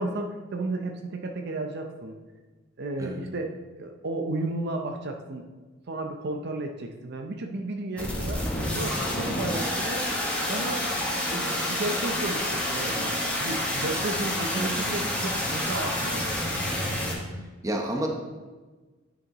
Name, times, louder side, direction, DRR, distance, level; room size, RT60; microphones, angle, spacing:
voice 1, 0.0-2.2 2.8-5.4 5.9-8.4 8.7-10.1 10.5-10.9 11.3-16.4, right 2 dB, 60° right, 4 dB, 0.6 m, -33 dB
sound 1, 8.0-17.1, left 1 dB, 5° left, 1.4 m, -28 dB
voice 2, 17.6-18.1, right 1 dB, 15° right, 2 dB, 0.8 m, -29 dB
9.6 x 6.2 x 3.0 m, 1.3 s
head